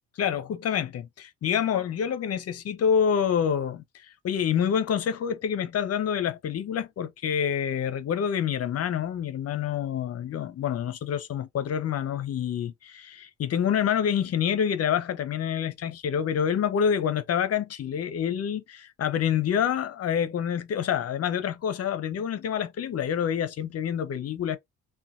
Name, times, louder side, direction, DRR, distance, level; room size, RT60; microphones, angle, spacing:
voice 1, 0.2-3.8 4.2-24.6, left 8 dB, 55° left, 0.6 m, -27 dB
2.7 x 2.2 x 2.3 m
cardioid pair, 90°, 30 cm